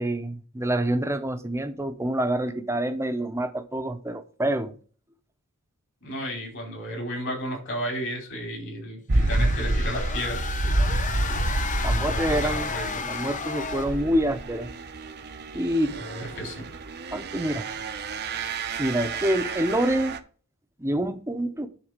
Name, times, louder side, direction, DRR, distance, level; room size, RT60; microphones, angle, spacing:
voice 1, 0.0-4.7 11.3-11.4 11.8-12.7 13.0-14.7 15.5-16.0 17.1-17.7 18.8-20.2 20.8-21.7, right 1 dB, 10° right, 0.9 m, -27 dB
voice 2, 6.0-10.4 12.1-13.0 15.9-16.7, equal, 55° left, 4.8 m, -33 dB
sound 1, 9.1-14.1, left 5 dB, 35° left, 0.8 m, -33 dB
sound 2, 9.1-20.2, right 2 dB, 45° right, 0.8 m, -29 dB
10.5 x 4.1 x 6.6 m
head